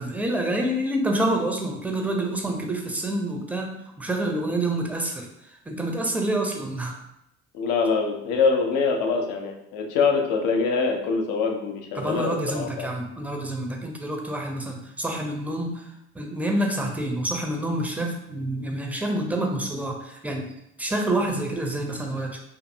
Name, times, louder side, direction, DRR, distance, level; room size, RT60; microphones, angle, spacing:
voice 1, 0.0-5.3 5.7-6.9 11.9-15.8 16.1-20.5 20.8-22.4, right 1 dB, 5° right, 2 dB, 0.5 m, -27 dB
voice 2, 7.5-12.9, left 4 dB, 70° left, 3 dB, 0.6 m, -24 dB
2.6 x 2.6 x 2.6 m, 0.81 s
hypercardioid pair, 50°, 36 cm